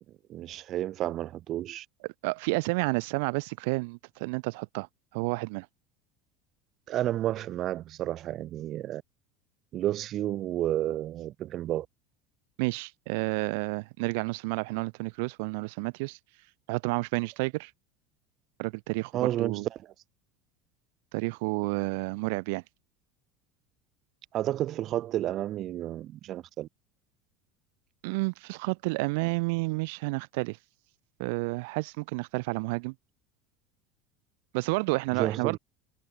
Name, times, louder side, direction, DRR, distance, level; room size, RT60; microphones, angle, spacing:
voice 1, 0.3-1.9 6.9-9.0 9.7-11.9 19.1-19.8 24.3-26.7 35.1-35.6, right 13 dB, 35° right, 1.1 m, -31 dB
voice 2, 2.2-4.9 5.1-5.7 12.6-16.2 16.7-17.7 18.6-19.7 21.1-22.6 28.0-30.6 31.2-32.9 34.5-35.6, right 28 dB, 70° right, 1.4 m, -30 dB
cardioid pair, 160°, 0 cm